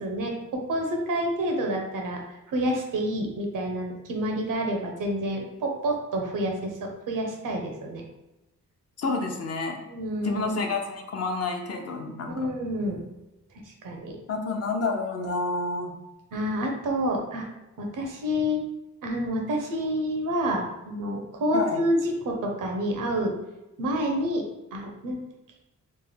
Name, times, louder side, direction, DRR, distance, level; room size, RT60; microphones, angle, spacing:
voice 1, 0.0-2.2 2.5-8.0 9.9-10.5 12.3-13.0 13.8-14.2 16.3-17.5 17.8-18.6 19.0-22.0 22.3-23.3 23.8-24.4 24.7-25.2, equal, 80° right, 1 dB, 0.8 m, -28 dB
voice 2, 9.0-9.8 10.2-12.5 14.3-15.9 21.5-21.8, left 3 dB, 50° left, 3 dB, 0.6 m, -29 dB
3.2 x 2.1 x 3.3 m, 0.99 s
cardioid pair, 100°, 31 cm